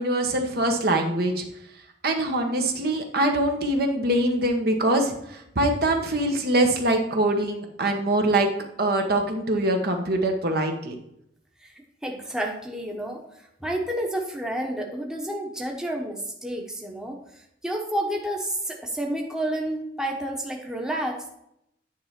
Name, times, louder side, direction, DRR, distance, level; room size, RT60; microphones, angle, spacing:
voice 1, 0.0-1.4 2.0-8.5 8.8-11.0, right 1 dB, 55° right, 3 dB, 1.1 m, -23 dB
voice 2, 12.0-13.2 13.6-17.2 17.6-21.3, right 1 dB, 5° right, 0 dB, 0.9 m, -30 dB
9.8 x 3.4 x 5.8 m, 0.77 s
head